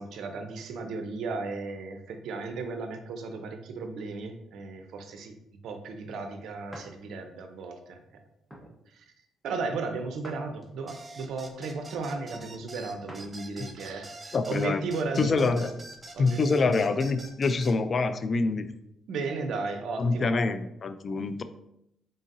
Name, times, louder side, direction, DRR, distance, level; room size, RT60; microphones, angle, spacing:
voice 1, 0.0-5.3 5.6-8.0 8.9-9.0 9.4-15.7 16.1-16.7 19.1-20.4, right 3 dB, 75° right, 7 dB, 0.5 m, -35 dB
sound 1, 6.7-7.0 7.6-7.8 8.5-8.8 10.2-11.0 13.1-13.4 13.9-14.0 15.6-16.3, equal, ahead, 0.8 m, -48 dB
sound 2, 10.9-17.8, right 2 dB, 20° right, 0.5 m, -45 dB
voice 2, 14.3-14.8 15.2-15.7 16.2-18.7 20.0-21.4, left 3 dB, 45° left, 11 dB, 0.3 m, -26 dB
3.9 x 3.8 x 2.6 m, 0.79 s
cardioid pair, 90°, 0 cm